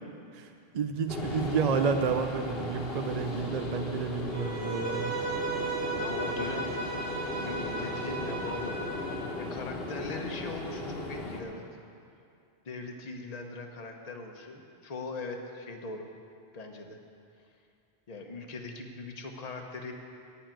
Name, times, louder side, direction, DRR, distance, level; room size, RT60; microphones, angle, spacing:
voice 1, 0.7-5.2, right 5 dB, 50° right, 6 dB, 0.6 m, -30 dB
sound 1, 1.1-11.4, left 2 dB, 65° left, 1.4 m, -36 dB
Bowed string instrument, 4.3-9.3, right 3 dB, 15° right, 1.4 m, -35 dB
voice 2, 6.0-6.7 7.3-11.6 12.6-16.1 16.5-17.0 18.1-19.9, left 3 dB, 40° left, 3 dB, 1.0 m, -40 dB
8.9 x 7.2 x 9.0 m, 2.5 s
omnidirectional pair, 1.1 m